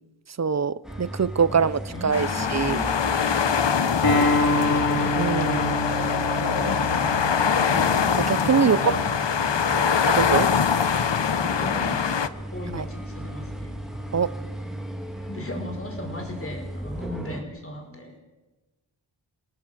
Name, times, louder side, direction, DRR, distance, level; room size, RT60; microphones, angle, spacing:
voice 1, 0.4-2.8 5.1-5.8 7.7-8.9 10.1-10.5 12.7-12.9 14.1-14.3, right 6 dB, 35° right, 0.7 m, -24 dB
sound 1, 0.8-17.4, equal, ahead, 2.8 m, -37 dB
voice 2, 1.5-2.9 6.4-7.5 8.6-9.0 9.7-10.0 11.4-12.2 12.5-13.7 15.2-18.2, left 1 dB, 30° left, 5.4 m, -37 dB
sound 2, 2.1-12.3, left 6 dB, 70° left, 1.0 m, -23 dB
Acoustic guitar, 4.0-9.2, left 1 dB, 50° left, 3.5 m, -27 dB
29.5 x 18.0 x 6.4 m
wide cardioid pair, 75°, 45 cm